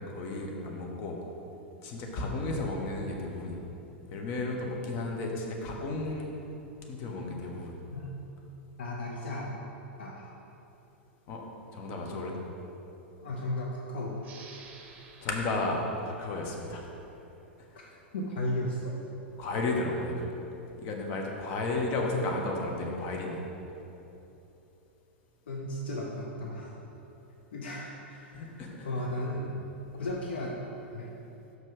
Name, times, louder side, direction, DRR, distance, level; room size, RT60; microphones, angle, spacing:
voice 1, 0.1-1.2 1.8-3.6 4.1-6.3 6.8-7.8 11.3-11.4 11.7-12.4 15.2-16.8 17.7-17.9 19.4-20.3 20.8-23.4 28.3-28.9, left 2 dB, 40° left, 0 dB, 1.0 m, -33 dB
voice 2, 8.8-9.6 10.0-10.3 13.2-14.2 17.7-17.8 18.1-18.9 25.5-26.8 27.5-29.6 30.0-30.6 30.9-31.1, left 1 dB, 60° left, -2 dB, 0.7 m, -35 dB
sound 1, 14.2-17.5, right 4 dB, 30° right, 0.8 m, -53 dB
6.0 x 5.4 x 5.2 m, 3.0 s
figure-of-eight pair, 95°, 6 cm